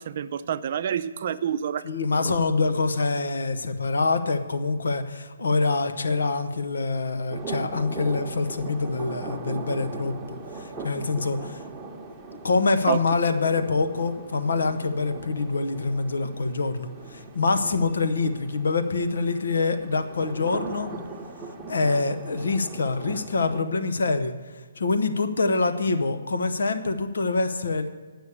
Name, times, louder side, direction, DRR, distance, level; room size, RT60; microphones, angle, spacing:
voice 1, 0.0-1.8 2.2-2.3 12.9-13.0, right 9 dB, 50° right, 12 dB, 0.5 m, -27 dB
voice 2, 1.8-11.6 12.4-20.9 21.7-24.3 24.8-27.9, left 3 dB, 75° left, 8 dB, 0.9 m, -25 dB
sound 1, 7.3-23.6, right 2 dB, 10° right, 1.1 m, -39 dB
9.7 x 6.2 x 8.4 m, 1.5 s
hypercardioid pair, 145°, 0 cm